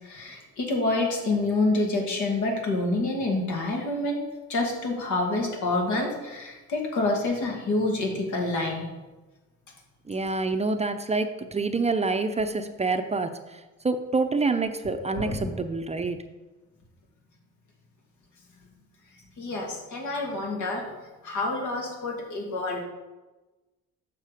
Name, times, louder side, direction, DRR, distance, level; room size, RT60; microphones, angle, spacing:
voice 1, 0.0-4.2 4.5-8.8 15.1-15.5 19.4-20.8 21.2-22.8, left 2 dB, 75° left, 1 dB, 2.0 m, -27 dB
voice 2, 10.1-13.6 13.8-16.2, right 3 dB, 20° right, 8 dB, 0.5 m, -27 dB
7.2 x 6.0 x 4.9 m, 1.2 s
cardioid pair, 90°, 30 cm